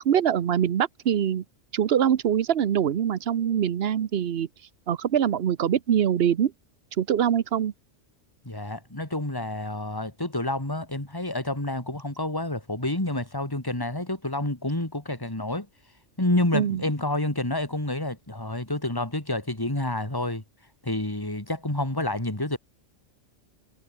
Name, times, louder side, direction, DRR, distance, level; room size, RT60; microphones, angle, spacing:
voice 1, 0.0-1.4 1.7-4.5 4.9-6.5 7.0-7.7 16.5-16.8, right 9 dB, 55° right, 1.0 m, -23 dB
voice 2, 8.4-15.7 16.2-20.4 20.8-22.6, left 1 dB, 15° left, 3.4 m, -28 dB
omnidirectional pair, 1.3 m